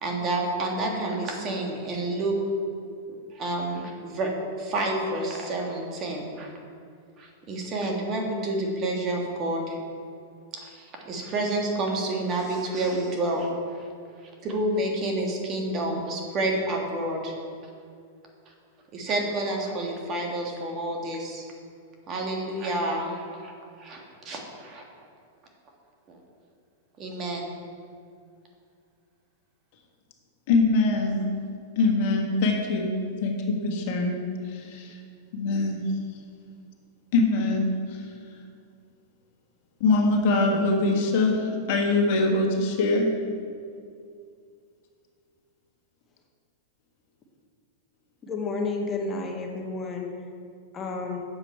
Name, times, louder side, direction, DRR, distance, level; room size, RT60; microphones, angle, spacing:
voice 1, 0.0-2.3 3.3-6.5 7.2-9.8 10.5-13.9 14.4-17.3 18.9-21.4 22.1-24.8 26.1-26.2 27.0-27.5, right 1 dB, 35° right, 0 dB, 1.6 m, -29 dB
voice 2, 30.5-31.2 31.8-32.9 33.2-34.2 34.5-35.0 35.3-35.8 37.1-37.7 39.8-43.1, left 3 dB, 55° left, 1 dB, 1.5 m, -23 dB
voice 3, 48.2-50.1 50.7-51.2, left 3 dB, 25° left, 1 dB, 1.3 m, -31 dB
7.9 x 7.0 x 4.4 m, 2.3 s
hypercardioid pair, 125°, 0 cm